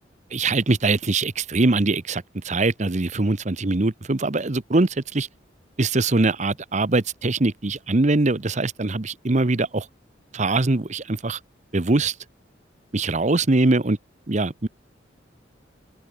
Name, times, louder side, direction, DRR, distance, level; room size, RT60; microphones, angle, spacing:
voice 1, 0.3-5.3 5.8-9.9 10.3-11.4 11.7-12.1 12.9-14.0 14.3-14.7, right 2 dB, 40° right, 0.9 m, -22 dB
open air
head